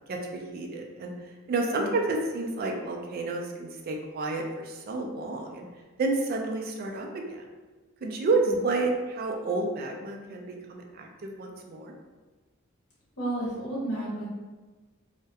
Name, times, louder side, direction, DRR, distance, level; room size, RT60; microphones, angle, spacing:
voice 1, 0.1-5.7 6.0-7.5 8.0-11.9, right 3 dB, 45° right, 1 dB, 0.3 m, -30 dB
voice 2, 13.2-14.3, right 1 dB, 80° left, -6 dB, 0.8 m, -32 dB
2.3 x 2.1 x 2.7 m, 1.3 s
head